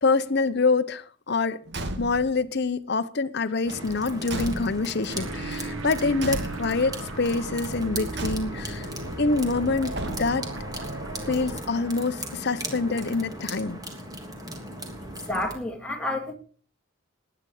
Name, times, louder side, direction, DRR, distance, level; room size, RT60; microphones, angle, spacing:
voice 1, 0.0-1.6 2.0-8.9 9.2-10.5 11.3-13.8, left 3 dB, 55° left, 0.8 m, -26 dB
Car / Truck / Slam, 1.7-2.4 3.7-5.1 6.2-7.0 8.1-8.8 9.9-10.6, right 1 dB, 55° right, 2.0 m, -35 dB
sound 1, 3.7-15.5, right 1 dB, 20° right, 3.1 m, -37 dB
sound 2, 5.1-11.6, right 2 dB, 85° right, 1.6 m, -36 dB
voice 2, 15.0-16.3, left 1 dB, 5° left, 2.7 m, -31 dB
20.5 x 9.9 x 4.9 m
head